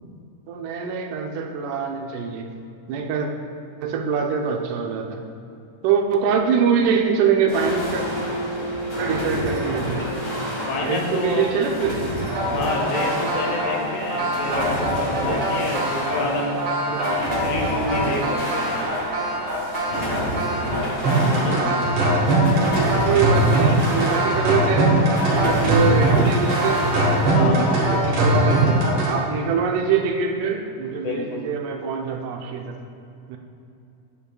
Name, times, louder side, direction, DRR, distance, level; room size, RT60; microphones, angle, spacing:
voice 1, 0.5-2.5 2.9-3.3 3.8-5.2 5.8-8.0 9.0-10.1 10.8-12.1 15.2-15.9 16.2-16.3 16.9-17.2 22.7-25.0 25.3-26.9 27.3-32.8 33.3-33.4, right 6 dB, 85° right, 4 dB, 2.2 m, -24 dB
sound 1, 7.5-27.3, equal, 35° left, 0.9 m, -29 dB
voice 2, 10.7-11.7 12.4-16.6 17.1-18.8 21.3-21.7 27.3-27.8 31.0-31.5, left 2 dB, 75° left, 0 dB, 2.4 m, -28 dB
sound 2, 12.2-29.1, right 1 dB, 55° right, 2.4 m, -22 dB
9.1 x 8.5 x 2.3 m, 2.7 s
omnidirectional pair, 3.5 m